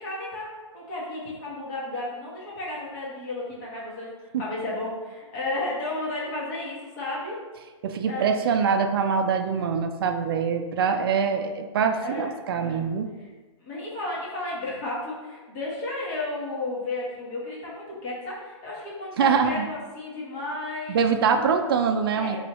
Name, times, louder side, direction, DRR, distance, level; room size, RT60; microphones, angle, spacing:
voice 1, 0.0-7.4 8.1-8.5 12.0-12.9 13.2-13.3 13.6-21.0 21.3-21.7 22.1-22.4, left 2 dB, 35° left, -6 dB, 1.4 m, -33 dB
voice 2, 7.8-13.1 19.2-19.7 20.9-22.4, right 6 dB, 50° right, 6 dB, 0.4 m, -24 dB
4.4 x 3.1 x 3.0 m, 1.3 s
hypercardioid pair, 155°, 16 cm